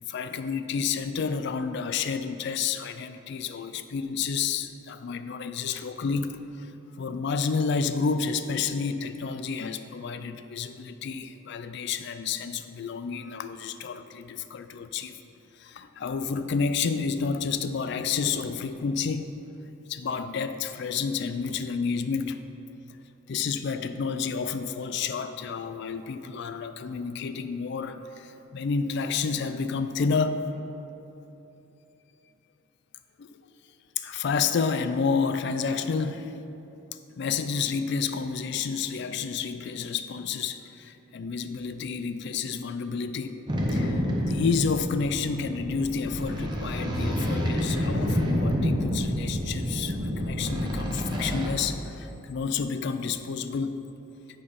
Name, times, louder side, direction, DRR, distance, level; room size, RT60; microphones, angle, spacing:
voice 1, 0.0-6.7 7.0-15.2 15.6-19.3 19.9-22.5 23.3-30.4 33.2-33.3 34.0-36.3 37.2-43.4 43.7-53.9, left 5 dB, 50° left, 10 dB, 0.3 m, -30 dB
sound 1, 43.5-51.5, equal, 20° right, 0.8 m, -28 dB
8.5 x 4.4 x 5.1 m, 3.0 s
head